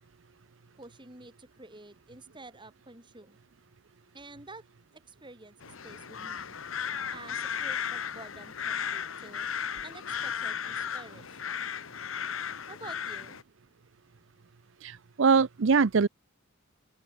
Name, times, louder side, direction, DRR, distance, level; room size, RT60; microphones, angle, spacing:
voice 1, 0.8-3.4 4.1-4.6 4.9-6.6 7.1-9.5 9.8-11.7 12.7-13.4, right 2 dB, 25° right, 5.3 m, -49 dB
sound 1, 5.6-13.4, left 7 dB, 80° left, 1.1 m, -35 dB
voice 2, 14.8-16.1, right 5 dB, 65° right, 0.6 m, -23 dB
open air
head